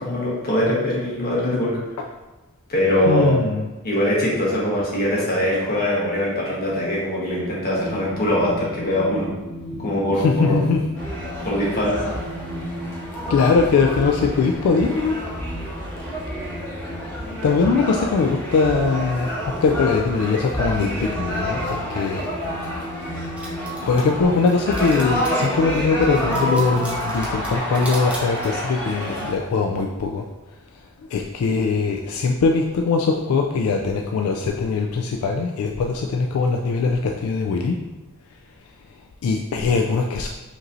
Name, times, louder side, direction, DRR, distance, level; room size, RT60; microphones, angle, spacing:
voice 1, 0.0-1.8 2.7-3.3 3.8-9.3 9.7-10.7 11.4-12.2, left 1 dB, 45° left, -5 dB, 1.2 m, -22 dB
voice 2, 3.1-3.6 10.2-10.8 13.3-15.2 17.4-19.3 19.6-22.3 23.8-30.2 31.1-37.8 39.2-40.3, left 4 dB, 75° left, 2 dB, 0.3 m, -21 dB
sound 1, 7.7-26.8, equal, 40° right, 1.3 m, -36 dB
sound 2, 10.9-29.3, equal, 10° left, 1.4 m, -29 dB
sound 3, 23.0-25.5 26.0-28.7, right 1 dB, 5° right, 0.7 m, -39 dB
5.0 x 3.1 x 2.6 m, 1.1 s
head